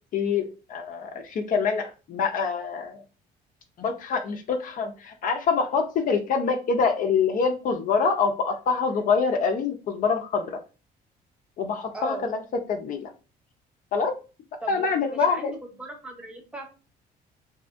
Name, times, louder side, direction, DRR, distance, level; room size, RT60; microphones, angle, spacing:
voice 1, 0.1-3.0 3.8-10.6 11.6-12.4 12.7-13.1 13.9-14.1 14.7-15.5, left 5 dB, 55° left, 4 dB, 0.5 m, -25 dB
voice 2, 11.9-12.3 14.6-15.5 15.8-16.7, right 2 dB, 5° right, 2 dB, 0.7 m, -37 dB
2.7 x 2.4 x 2.5 m, 0.33 s
cardioid pair, 110°, 17 cm